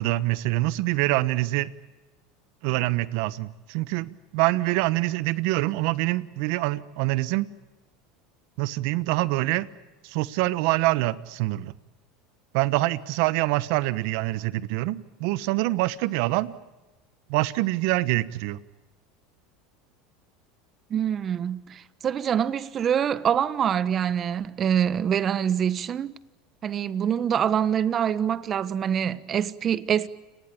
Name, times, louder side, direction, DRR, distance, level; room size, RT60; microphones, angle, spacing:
voice 1, 0.0-1.7 2.6-7.5 8.6-9.7 10.0-11.7 12.5-16.5 17.3-18.6, right 19 dB, 70° right, 1.1 m, -25 dB
voice 2, 20.9-26.1 26.6-30.1, right 8 dB, 35° right, 1.2 m, -25 dB
29.5 x 19.5 x 8.5 m
supercardioid pair, 100°, 0 cm